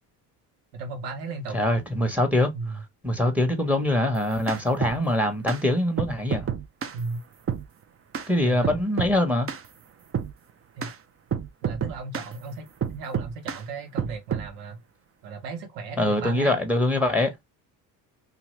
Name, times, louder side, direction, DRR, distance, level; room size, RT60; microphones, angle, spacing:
voice 1, 0.7-1.6 2.5-2.8 6.9-7.2 8.4-8.7 10.8-10.9 11.6-12.7 12.9-14.8 15.2-16.6, right 3 dB, 90° right, 1.0 m, -35 dB
voice 2, 1.5-2.5 3.0-6.5 8.3-9.5 16.0-17.3, left 1 dB, 5° right, 1.0 m, -23 dB
sound 1, 4.1-5.0 5.5-5.6 6.0-7.0 7.5-7.7 8.1-8.3 8.6-9.2 9.5-9.7 10.1-10.3 10.8-10.9 11.3-12.3 12.8-13.6 14.0-14.5, right 8 dB, 30° right, 0.5 m, -29 dB
2.9 x 2.5 x 3.0 m
supercardioid pair, 65°, 48 cm